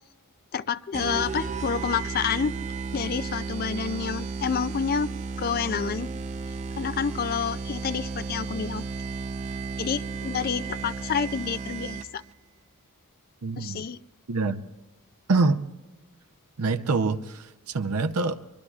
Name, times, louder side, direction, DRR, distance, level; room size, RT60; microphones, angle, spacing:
voice 1, 0.5-2.6 2.9-6.1 6.8-8.8 9.8-12.2 13.6-14.0, left 6 dB, 45° left, 14 dB, 0.4 m, -29 dB
sound 1, 0.9-12.3, right 4 dB, 30° right, 0.6 m, -34 dB
voice 2, 13.4-13.9 14.3-14.6 15.3-15.6 16.6-18.4, right 3 dB, 85° right, 10 dB, 0.7 m, -25 dB
24.0 x 22.5 x 2.4 m, 1.2 s
head